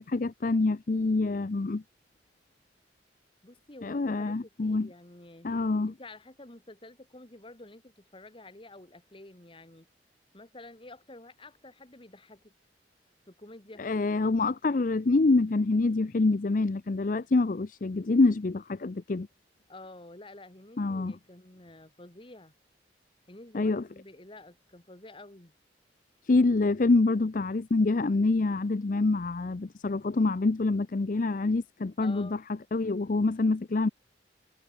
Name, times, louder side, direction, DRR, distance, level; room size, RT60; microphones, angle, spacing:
voice 1, 0.0-1.8 3.8-4.9 5.4-5.9 13.8-19.3 20.8-21.1 23.5-23.8 26.2-32.4 32.7-33.9, left 3 dB, 45° left, 0.5 m, -26 dB
voice 2, 3.4-4.3 4.6-5.5 5.9-9.9 10.3-12.5 13.3-13.8 19.7-22.5 23.3-25.5 32.0-32.4, left 2 dB, 30° left, 1.9 m, -49 dB
head